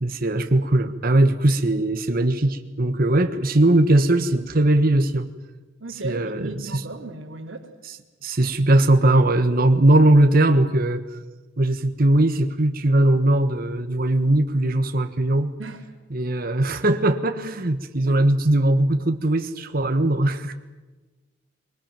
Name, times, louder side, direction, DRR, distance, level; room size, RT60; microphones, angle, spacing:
voice 1, 0.0-5.3 5.9-6.8 7.8-8.0 8.2-11.0 11.6-15.5 16.1-20.5, right 1 dB, 45° right, 7 dB, 1.4 m, -20 dB
voice 2, 5.8-7.7 15.6-15.8 18.1-18.2, right 3 dB, 70° right, -4 dB, 2.6 m, -35 dB
23.0 x 20.0 x 9.2 m, 1.2 s
head